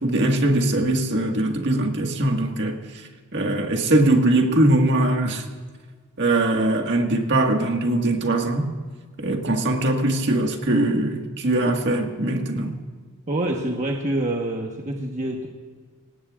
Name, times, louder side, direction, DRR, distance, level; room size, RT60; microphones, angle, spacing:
voice 1, 0.0-2.8 3.3-5.4 6.2-8.7 9.2-12.7, right 1 dB, 55° right, 1.8 m, -21 dB
voice 2, 13.3-15.5, right 1 dB, 35° right, 1.2 m, -26 dB
24.5 x 19.0 x 2.5 m
head